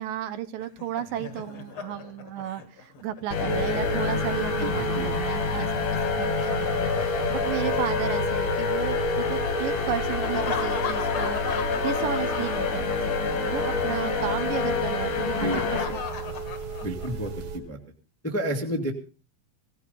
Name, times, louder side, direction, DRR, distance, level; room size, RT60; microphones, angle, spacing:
voice 1, 0.0-5.9 6.2-16.4, right 11 dB, 75° right, 11 dB, 2.6 m, -34 dB
Laughter, 0.6-4.7 6.4-8.5 10.2-13.3 13.5-13.7 15.2-17.3, left 6 dB, 45° left, 1.9 m, -37 dB
sound 1, 3.3-15.8, left 5 dB, 80° left, 4.2 m, -27 dB
sound 2, 3.5-17.6, right 5 dB, 45° right, 2.8 m, -34 dB
voice 2, 4.6-5.1 5.5-5.6 15.4-15.6 16.8-17.8 18.2-18.9, right 1 dB, 5° left, 3 dB, 1.0 m, -31 dB
18.0 x 16.0 x 4.0 m, 0.35 s
omnidirectional pair, 4.2 m